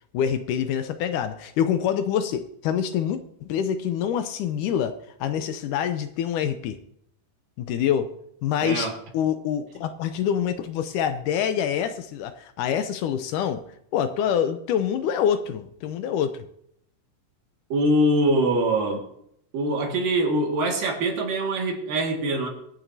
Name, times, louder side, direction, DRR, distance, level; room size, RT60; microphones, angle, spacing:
voice 1, 0.1-6.8 7.6-8.1 8.4-13.6 13.9-16.5, left 9 dB, 75° left, 10 dB, 2.1 m, -26 dB
voice 2, 8.6-8.9 17.7-19.0 19.5-22.5, right 1 dB, 75° right, 1 dB, 3.6 m, -23 dB
24.0 x 9.0 x 2.7 m, 0.72 s
omnidirectional pair, 3.9 m